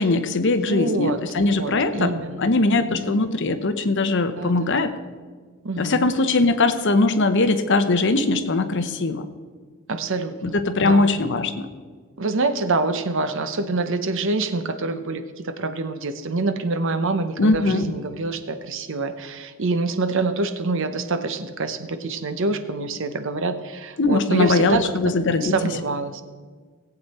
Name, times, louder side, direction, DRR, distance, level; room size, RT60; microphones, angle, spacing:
voice 1, 0.0-4.9 5.8-9.3 10.4-11.7 17.4-17.9 24.0-25.5, left 3 dB, 55° left, 10 dB, 0.8 m, -21 dB
voice 2, 0.6-2.5 2.9-3.2 4.4-4.9 5.6-6.1 9.9-10.6 10.8-11.1 12.2-25.1 25.4-26.2, right 3 dB, 60° right, 10 dB, 0.8 m, -26 dB
18.0 x 8.2 x 4.2 m, 1.5 s
head